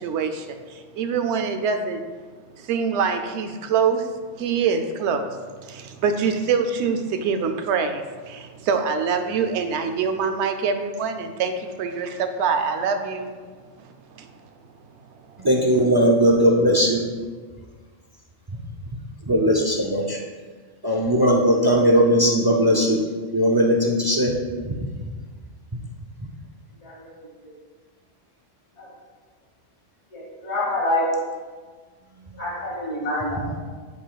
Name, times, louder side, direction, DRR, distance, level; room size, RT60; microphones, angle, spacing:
voice 1, 0.0-2.0 2.6-4.1 4.4-13.3 14.1-14.3, right 6 dB, 70° right, 7 dB, 0.9 m, -25 dB
voice 2, 15.4-17.0 19.3-20.2 20.8-23.0 23.3-24.4, equal, 35° right, 0 dB, 0.3 m, -18 dB
voice 3, 26.8-27.1 27.4-27.5 28.8-28.9 30.1-31.1 32.4-33.6, left 1 dB, 60° left, -7 dB, 2.3 m, -27 dB
10.5 x 5.0 x 2.3 m, 1.5 s
omnidirectional pair, 1.3 m